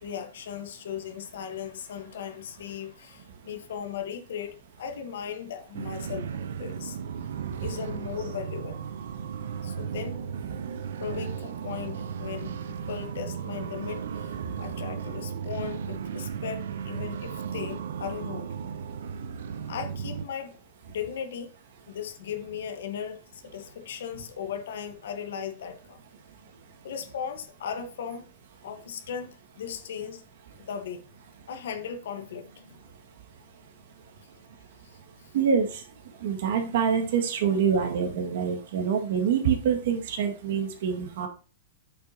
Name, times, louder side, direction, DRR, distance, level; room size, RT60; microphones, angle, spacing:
voice 1, 0.0-7.0 7.6-8.8 9.6-10.2 11.0-18.5 19.7-20.5 20.9-21.5 21.9-26.0 26.8-28.3 28.6-30.2 30.7-31.0 31.5-32.8 34.8-35.0, left 8 dB, 75° left, 1.1 m, -37 dB
sound 1, 5.7-20.3, right 7 dB, 80° right, 0.6 m, -35 dB
voice 2, 7.3-7.6 14.4-14.6 35.3-35.9 36.1-41.3, right 7 dB, 60° right, 1.8 m, -26 dB
8.0 x 6.5 x 2.8 m
supercardioid pair, 165°, 0 cm